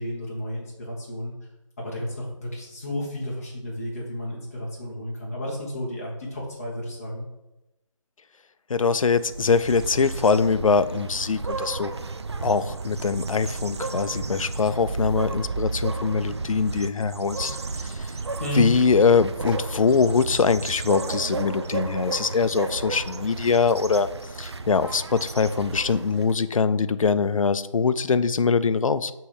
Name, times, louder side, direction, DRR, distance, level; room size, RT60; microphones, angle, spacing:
voice 1, 0.0-1.3 1.8-7.3 18.4-18.6, equal, 25° left, -4 dB, 1.2 m, -32 dB
voice 2, 8.7-11.9 12.4-18.1 18.5-24.1 24.4-29.1, left 5 dB, 75° left, 14 dB, 0.4 m, -23 dB
sound 1, 9.1-26.4, right 3 dB, 55° right, 0.4 m, -33 dB
6.7 x 3.1 x 5.0 m, 0.96 s
figure-of-eight pair, 170°, 17 cm